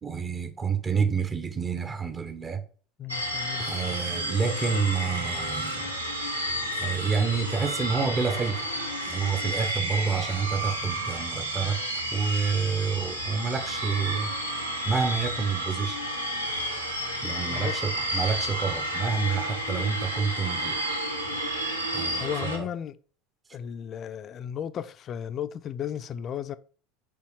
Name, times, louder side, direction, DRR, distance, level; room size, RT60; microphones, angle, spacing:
voice 1, 0.0-2.6 3.6-5.9 6.7-8.7 9.0-11.8 12.1-14.3 14.9-16.0 17.2-20.9 21.9-22.7, right 5 dB, 25° right, 1.2 m, -28 dB
voice 2, 3.0-3.7 17.5-17.7 22.2-22.9 23.5-26.6, left 9 dB, 35° left, 0.6 m, -34 dB
sound 1, 3.1-22.6, right 1 dB, 85° right, 1.7 m, -31 dB
7.1 x 5.8 x 5.9 m
figure-of-eight pair, 75°, 0 cm